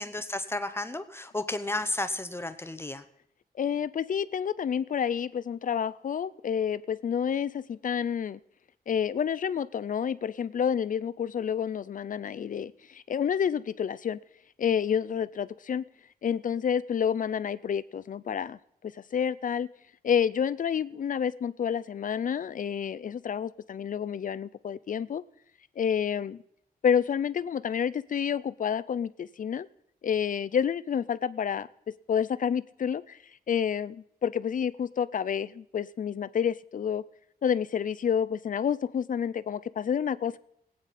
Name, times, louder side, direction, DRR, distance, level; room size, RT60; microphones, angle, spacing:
voice 1, 0.0-3.0, left 2 dB, 15° left, 10 dB, 0.7 m, -33 dB
voice 2, 3.6-8.4 8.9-14.2 14.6-15.8 16.2-18.6 18.9-19.7 20.0-25.2 25.8-26.4 26.8-29.7 30.0-31.7 32.1-33.2 33.5-37.0 37.4-40.4, left 8 dB, 55° left, 17 dB, 0.5 m, -29 dB
21.0 x 8.8 x 4.2 m, 0.70 s
wide cardioid pair, 140°, 16 cm